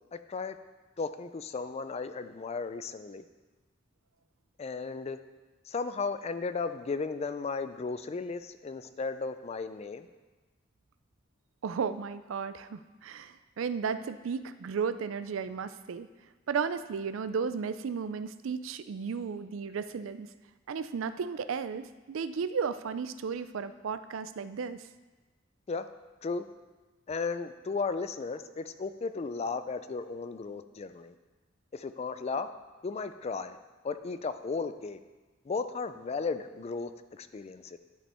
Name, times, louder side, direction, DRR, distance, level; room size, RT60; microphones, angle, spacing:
voice 1, 0.1-0.6 1.0-3.2 4.6-5.2 5.7-10.1 25.7-25.9 26.2-26.4 27.1-31.1 31.7-32.5 32.8-33.6 33.8-35.0 35.5-37.8, left 4 dB, 30° left, 11 dB, 0.3 m, -35 dB
voice 2, 11.6-16.1 16.5-20.3 20.7-24.9, right 6 dB, 80° right, 12 dB, 0.4 m, -34 dB
11.0 x 5.4 x 4.3 m, 1.2 s
head